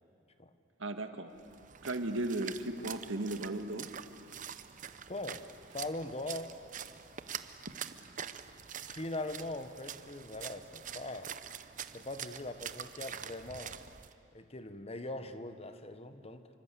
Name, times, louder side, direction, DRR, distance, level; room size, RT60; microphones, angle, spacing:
voice 1, 0.8-1.3 1.8-3.9, right 2 dB, 85° right, 7 dB, 1.7 m, -35 dB
Splash splatter, 1.4-14.1, right 8 dB, 40° right, 0.8 m, -45 dB
voice 2, 5.1-5.5 5.7-6.6 8.9-11.3 11.9-13.8 14.3-16.5, left 2 dB, 30° left, 10 dB, 1.2 m, -41 dB
27.0 x 25.0 x 8.3 m, 2.5 s
head